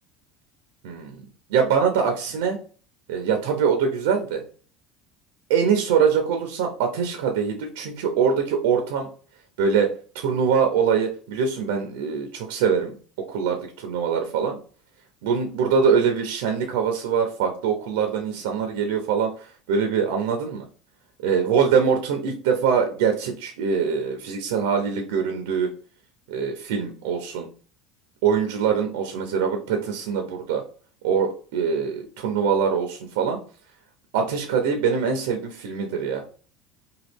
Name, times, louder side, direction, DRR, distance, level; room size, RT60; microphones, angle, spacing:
voice 1, 0.8-1.2 1.5-2.6 3.1-4.4 5.5-9.1 9.6-12.9 13.3-14.6 15.2-20.6 21.2-25.7 26.3-27.5 28.2-30.6 31.0-33.4 34.1-36.2, right 6 dB, 85° right, 4 dB, 0.6 m, -23 dB
3.0 x 2.3 x 3.4 m, 0.40 s
supercardioid pair, 135°, 0 cm